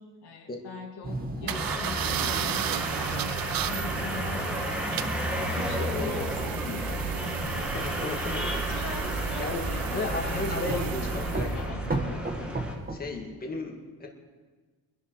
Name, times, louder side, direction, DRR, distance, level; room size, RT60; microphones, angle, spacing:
voice 1, 0.0-8.4 8.7-12.6 13.1-13.3, left 5 dB, 80° left, 1 dB, 2.6 m, -42 dB
sound 1, 1.0-8.0 9.6-10.1 10.7-11.0 11.3-13.0, right 2 dB, 25° right, 1.8 m, -38 dB
sound 2, 1.5-12.7, equal, 5° right, 2.2 m, -32 dB
sound 3, 1.5-11.6, right 11 dB, 60° right, 0.6 m, -34 dB
voice 2, 8.0-8.6 9.4-9.6 9.9-11.0 11.3-11.5 12.9-14.1, left 2 dB, 25° left, 0 dB, 2.0 m, -33 dB
23.5 x 10.5 x 4.8 m, 1.4 s
cardioid pair, 130°, 39 cm